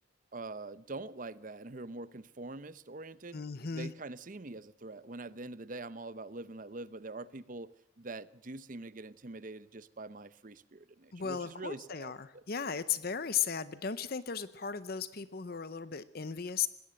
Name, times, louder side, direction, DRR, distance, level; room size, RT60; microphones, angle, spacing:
voice 1, 0.3-3.4 3.7-12.4, right 2 dB, 40° right, 17 dB, 0.7 m, -44 dB
voice 2, 3.3-3.9 11.1-16.7, left 7 dB, 50° left, 15 dB, 0.7 m, -36 dB
20.5 x 17.5 x 7.7 m, 0.76 s
head